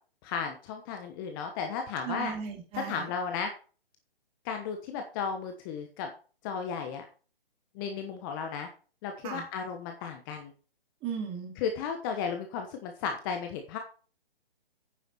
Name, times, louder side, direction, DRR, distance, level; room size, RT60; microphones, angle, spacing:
voice 1, 0.2-2.3 2.7-3.5 4.4-6.1 6.4-7.1 7.7-8.7 9.0-10.5 11.6-13.8, left 6 dB, 20° left, 5 dB, 1.1 m, -34 dB
voice 2, 2.0-3.0 9.2-9.4 11.0-11.5, right 7 dB, 20° right, 3 dB, 2.5 m, -36 dB
9.4 x 7.0 x 4.3 m, 0.38 s
hypercardioid pair, 150°, 30 cm